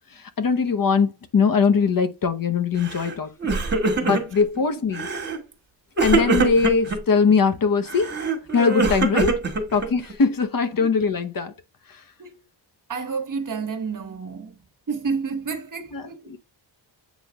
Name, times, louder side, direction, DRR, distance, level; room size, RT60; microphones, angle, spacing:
voice 1, 0.4-3.5 4.0-5.1 6.0-8.2 8.5-9.4 9.7-11.5 15.9-16.0 16.3-16.4, left 5 dB, 50° left, 0.9 m, -21 dB
Crying sobbing, 2.8-3.1 3.4-4.4 4.9-5.4 6.0-7.0 7.9-10.1, right 3 dB, 25° right, 1.9 m, -23 dB
voice 2, 12.9-14.6 14.9-16.3, right 5 dB, 45° right, 1.4 m, -30 dB
8.3 x 4.9 x 3.5 m
wide cardioid pair, 170°, 43 cm